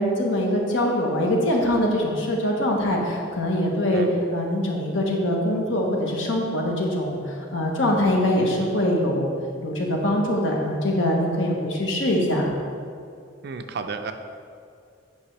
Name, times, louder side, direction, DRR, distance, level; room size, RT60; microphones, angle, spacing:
voice 1, 0.0-4.0 4.3-9.3 9.6-12.5, left 1 dB, 75° left, -1 dB, 1.2 m, -23 dB
voice 2, 13.4-14.1, right 5 dB, 55° right, 7 dB, 0.4 m, -32 dB
8.6 x 5.6 x 3.2 m, 2.3 s
head